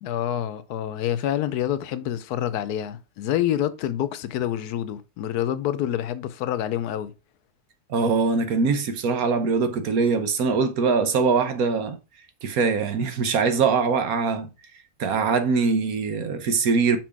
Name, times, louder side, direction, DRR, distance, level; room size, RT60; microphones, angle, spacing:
voice 1, 0.0-7.1, left 11 dB, 80° left, 1.2 m, -27 dB
voice 2, 7.9-12.0 12.4-14.5 15.0-17.0, right 5 dB, 70° right, 1.4 m, -22 dB
6.1 x 4.5 x 4.6 m
omnidirectional pair, 1.6 m